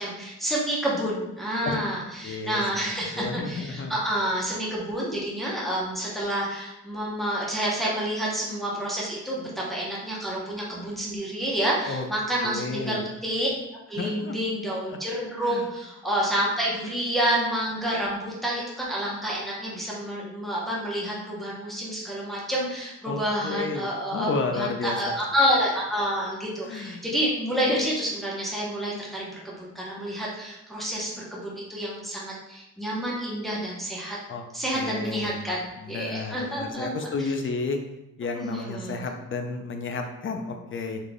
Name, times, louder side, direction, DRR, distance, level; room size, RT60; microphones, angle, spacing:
voice 1, 0.0-13.5 13.9-34.2 34.5-36.9 38.3-39.0, equal, ahead, -5 dB, 0.8 m, -29 dB
voice 2, 2.2-2.6 3.1-3.9 11.9-12.1 12.4-13.1 14.0-14.3 14.9-15.0 15.4-15.7 23.1-25.0 26.6-27.1 34.3-34.4 34.7-37.8 38.2-41.0, left 4 dB, 40° left, 4 dB, 0.5 m, -32 dB
3.9 x 3.2 x 2.2 m, 0.95 s
cardioid pair, 110°, 31 cm